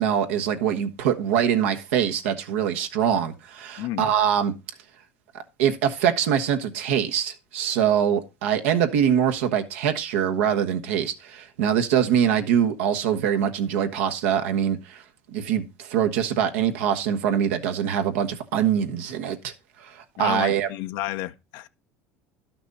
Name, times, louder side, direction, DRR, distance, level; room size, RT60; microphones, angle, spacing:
voice 1, 0.0-4.5 5.6-15.0 15.3-19.5 19.8-20.7, right 9 dB, 80° right, 1.2 m, -23 dB
voice 2, 3.8-4.1 20.2-21.7, left 14 dB, 70° left, 0.7 m, -31 dB
12.0 x 6.1 x 4.0 m
hypercardioid pair, 85°, 7 cm